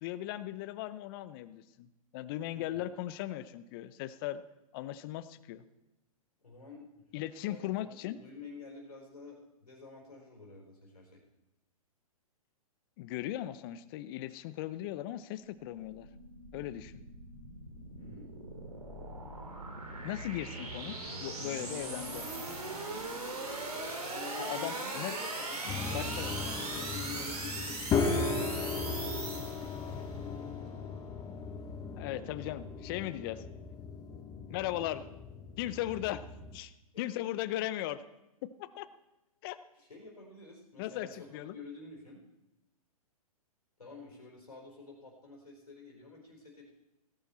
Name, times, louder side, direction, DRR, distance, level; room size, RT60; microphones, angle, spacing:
voice 1, 0.0-1.9 2.1-4.4 4.7-5.6 7.1-8.2 13.0-16.1 16.5-16.9 20.0-22.2 24.4-25.1 25.9-26.3 32.0-33.4 34.5-35.0 35.6-36.2 36.5-38.0 38.6-38.9 39.4-39.6 40.8-41.5, left 14 dB, 40° left, 15 dB, 0.7 m, -38 dB
voice 2, 2.5-2.9 6.4-7.1 7.5-11.2 18.0-18.3 24.1-30.8 39.7-42.2 43.8-46.7, left 3 dB, 90° left, 0 dB, 4.1 m, -49 dB
sound 1, 15.5-30.0, right 2 dB, 90° right, 3.2 m, -40 dB
sound 2, 25.7-36.6, left 4 dB, 20° left, 1.0 m, -37 dB
17.5 x 10.5 x 4.3 m, 0.96 s
hypercardioid pair, 125°, 19 cm